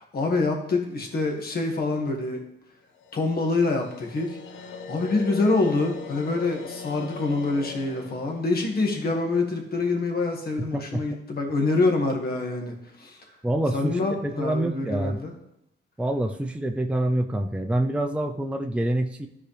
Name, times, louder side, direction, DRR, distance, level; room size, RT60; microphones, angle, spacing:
voice 1, 0.0-2.4 3.1-4.4 4.9-13.2 13.7-15.3, left 3 dB, 50° left, 2 dB, 2.0 m, -26 dB
sound 1, 2.9-10.1, left 4 dB, 70° left, 0.8 m, -41 dB
voice 2, 10.6-11.0 13.4-15.2 16.0-19.3, right 1 dB, 5° right, 4 dB, 0.6 m, -26 dB
13.0 x 4.9 x 3.4 m, 0.83 s
cardioid pair, 90°, 20 cm